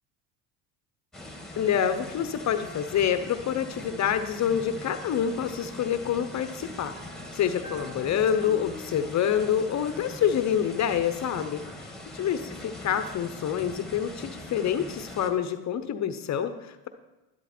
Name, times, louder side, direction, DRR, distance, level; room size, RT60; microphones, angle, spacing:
sound 1, 1.1-15.3, left 1 dB, ahead, 1.9 m, -42 dB
voice 1, 1.5-6.9 7.3-16.9, left 8 dB, 40° left, 10 dB, 0.9 m, -27 dB
sound 2, 7.0-10.8, right 2 dB, 50° right, 2.4 m, -48 dB
12.0 x 11.5 x 4.4 m, 1.1 s
supercardioid pair, 100°, 41 cm